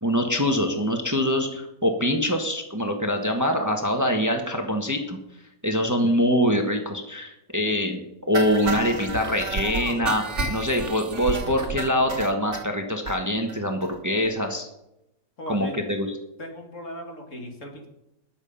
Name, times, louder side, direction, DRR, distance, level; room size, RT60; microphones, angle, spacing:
voice 1, 0.0-5.2 5.6-14.7 15.5-16.1, equal, 15° right, 4 dB, 1.4 m, -24 dB
sound 1, 8.3-12.6 13.1-13.2 13.5-13.6 13.8-13.9 14.3-14.4, right 3 dB, 55° right, 1.9 m, -31 dB
voice 2, 15.4-15.8 16.4-17.9, left 1 dB, 60° left, 2 dB, 2.8 m, -37 dB
20.0 x 7.4 x 5.5 m, 0.88 s
omnidirectional pair, 1.5 m